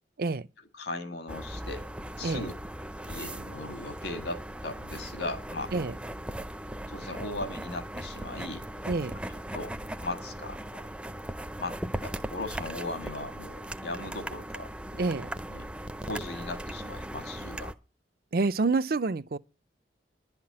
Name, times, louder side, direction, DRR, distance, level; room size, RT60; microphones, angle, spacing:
voice 1, 0.7-1.9 2.2-2.5 3.1-5.7 6.9-8.7 9.3-9.7 10.0-10.8 11.6-15.0 15.5-15.7 16.0-17.7, left 2 dB, 65° left, 1.9 m, -38 dB
sound 1, 1.3-17.7, right 1 dB, 5° right, 0.5 m, -38 dB
voice 2, 8.9-9.2 15.0-15.3 18.3-19.4, right 3 dB, 55° right, 0.5 m, -28 dB
11.5 x 5.8 x 8.6 m
head